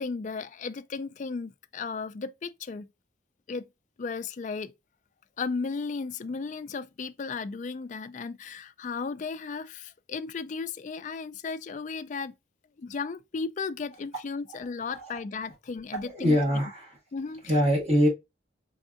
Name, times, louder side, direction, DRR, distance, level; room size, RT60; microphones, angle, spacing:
voice 1, 0.0-2.9 3.5-3.7 4.0-4.7 5.4-12.3 12.8-16.4 17.1-17.4, left 4 dB, 40° left, 0.4 m, -35 dB
voice 2, 16.0-17.0 17.5-18.1, equal, 35° right, 1.7 m, -23 dB
4.5 x 3.5 x 2.5 m
head